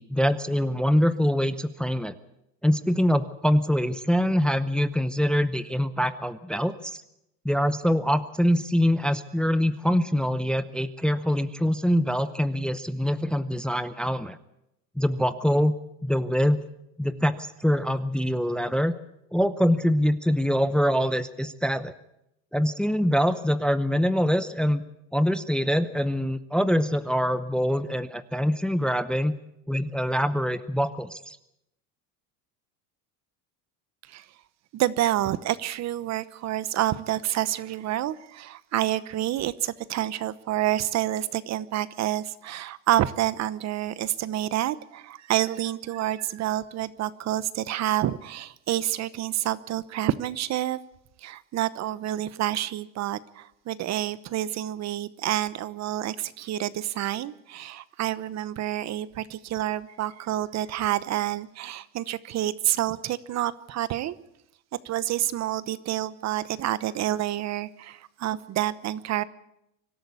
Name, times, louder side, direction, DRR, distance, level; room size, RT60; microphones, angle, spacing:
voice 1, 0.0-2.1 2.6-7.0 7.4-14.4 15.0-15.7 16.0-16.6 17.0-18.9 19.3-21.9 22.5-24.8 25.1-29.3 29.7-31.4, equal, ahead, 12 dB, 0.7 m, -24 dB
voice 2, 34.7-50.8 51.2-64.2 64.8-69.2, right 13 dB, 45° right, 16 dB, 1.0 m, -28 dB
24.5 x 13.0 x 8.4 m, 0.83 s
supercardioid pair, 120°, 38 cm